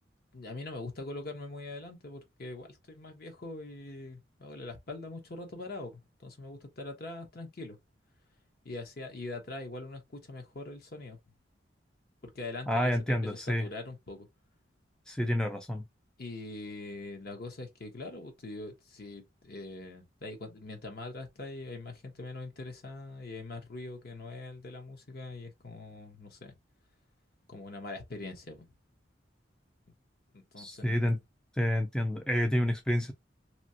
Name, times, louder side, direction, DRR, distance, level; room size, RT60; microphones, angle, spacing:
voice 1, 0.3-7.8 8.6-11.2 12.2-14.3 16.2-26.5 27.5-28.7 30.3-31.2, left 2 dB, 55° left, 1.0 m, -43 dB
voice 2, 12.7-13.7 15.1-15.8 30.6-31.2 31.6-33.1, left 1 dB, 5° left, 0.4 m, -29 dB
3.0 x 2.8 x 2.7 m
head